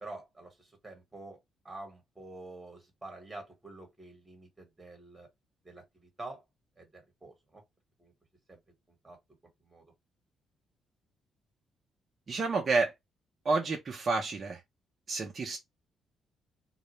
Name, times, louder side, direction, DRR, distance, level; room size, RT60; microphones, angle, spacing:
voice 1, 0.0-5.3 5.6-6.4 6.8-7.6 8.0-8.1 8.5-8.6 8.9-9.2 9.6-9.9, right 2 dB, 15° right, 1.2 m, -48 dB
voice 2, 12.3-12.9 13.4-14.6 15.1-15.6, right 3 dB, 40° right, 0.6 m, -29 dB
2.3 x 2.1 x 2.9 m
cardioid pair, 90°, 0 cm